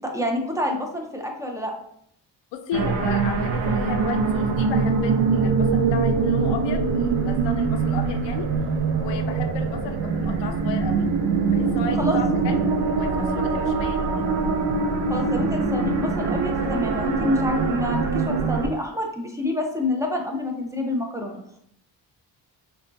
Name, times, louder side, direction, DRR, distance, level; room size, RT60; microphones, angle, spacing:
voice 1, 0.0-1.7 12.0-12.2 15.1-21.4, left 1 dB, 10° right, 2 dB, 0.5 m, -27 dB
voice 2, 2.5-8.5 9.0-11.1 11.5-14.3, left 7 dB, 80° left, 6 dB, 0.5 m, -34 dB
sound 1, 2.7-18.7, right 4 dB, 75° right, 0.6 m, -23 dB
4.2 x 2.3 x 2.6 m, 0.71 s
cardioid pair, 100°, 43 cm